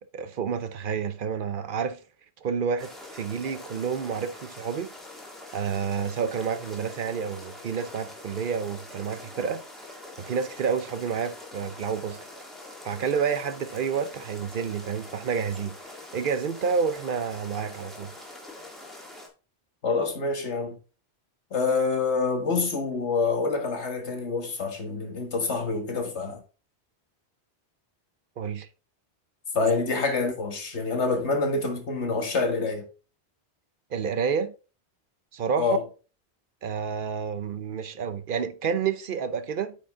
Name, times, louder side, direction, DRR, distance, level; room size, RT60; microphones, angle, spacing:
voice 1, 0.1-2.0 2.4-4.9 5.5-9.6 10.2-12.2 12.8-15.8 16.1-18.1 28.4-28.7 33.9-34.5 35.3-35.8 36.6-39.8, right 6 dB, 55° right, 0.7 m, -29 dB
sound 1, 2.8-19.3, left 2 dB, ahead, 1.9 m, -44 dB
voice 2, 19.8-20.8 21.5-26.4 29.5-32.9 35.6-35.8, left 4 dB, 85° left, 1.8 m, -26 dB
8.6 x 5.1 x 3.6 m
omnidirectional pair, 1.1 m